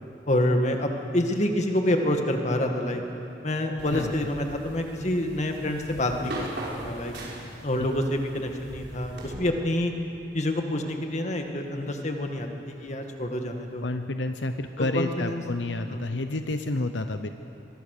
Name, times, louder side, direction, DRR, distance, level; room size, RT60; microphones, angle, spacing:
voice 1, 0.3-3.0 3.4-6.5 6.8-7.1 7.6-9.9 10.3-13.8 14.8-15.4 15.9-16.1, left 1 dB, 40° left, 4 dB, 2.0 m, -27 dB
sound 1, 3.8-9.3, right 1 dB, 70° right, 5.1 m, -39 dB
voice 2, 13.8-17.3, left 2 dB, 80° left, 8 dB, 0.9 m, -29 dB
23.0 x 22.0 x 6.8 m, 2.8 s
head